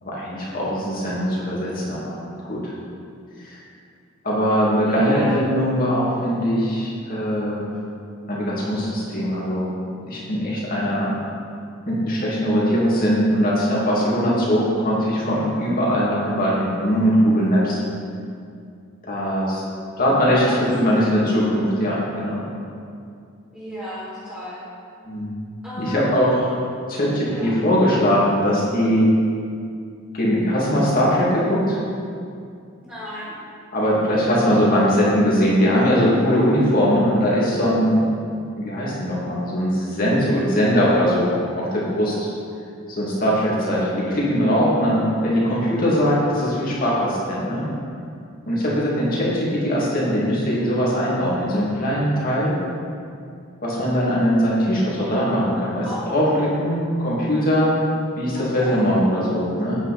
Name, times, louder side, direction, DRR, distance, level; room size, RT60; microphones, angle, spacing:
voice 1, 0.0-2.2 2.5-2.7 3.4-3.6 4.2-7.7 8.3-9.7 10.1-11.1 11.9-17.8 19.0-19.6 20.0-22.4 25.0-25.3 25.8-26.6 26.9-29.1 30.1-31.8 33.7-38.1 38.5-42.3 42.9-47.6 48.4-52.6 53.6-57.7 58.2-59.8, equal, 40° left, -6 dB, 2.7 m, -21 dB
voice 2, 4.8-5.4 20.4-21.1 23.5-24.6 25.6-26.5 27.2-27.6 32.8-33.3 45.3-45.6 55.8-56.6 58.3-59.0, left 1 dB, 5° right, -13 dB, 2.4 m, -34 dB
9.3 x 9.0 x 4.4 m, 2.4 s
head